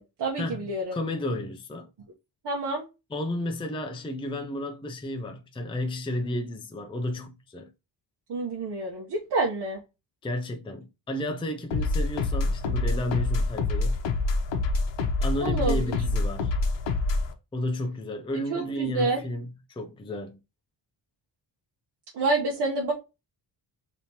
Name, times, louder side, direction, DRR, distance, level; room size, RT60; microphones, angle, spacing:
voice 1, 0.0-1.0 2.4-2.8 8.3-9.8 15.4-15.9 18.5-19.2 22.1-22.9, right 3 dB, 65° right, 1.0 m, -28 dB
voice 2, 0.9-1.9 3.1-7.7 10.2-14.0 15.2-16.5 17.5-20.4, left 1 dB, 10° left, 0.5 m, -32 dB
sound 1, 11.7-17.3, left 3 dB, 75° left, 0.9 m, -26 dB
5.4 x 2.9 x 2.8 m
cardioid pair, 100°, 45 cm